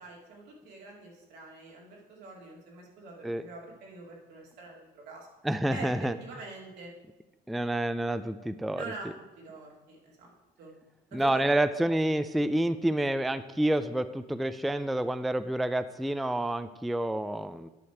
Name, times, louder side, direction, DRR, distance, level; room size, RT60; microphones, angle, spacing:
voice 1, 0.0-5.3 5.7-6.9 8.8-9.1 9.4-10.7 11.1-11.4, right 3 dB, 85° right, -2 dB, 2.6 m, -45 dB
voice 2, 5.4-6.2 7.5-8.9 11.1-17.7, right 1 dB, ahead, 12 dB, 0.3 m, -28 dB
10.0 x 6.5 x 4.6 m, 1.0 s
cardioid pair, 110°, 17 cm